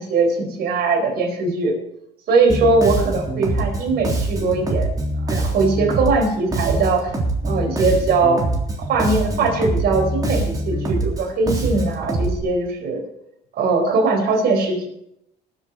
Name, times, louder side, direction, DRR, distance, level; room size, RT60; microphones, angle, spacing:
voice 1, 0.0-1.8 2.3-4.9 5.2-7.1 7.4-8.4 8.8-13.0 13.6-14.9, right 3 dB, 70° right, 2 dB, 4.5 m, -20 dB
Bass guitar, 2.5-12.4, right 2 dB, 20° right, 3.4 m, -24 dB
20.5 x 8.1 x 4.4 m, 0.80 s
cardioid pair, 110°, 17 cm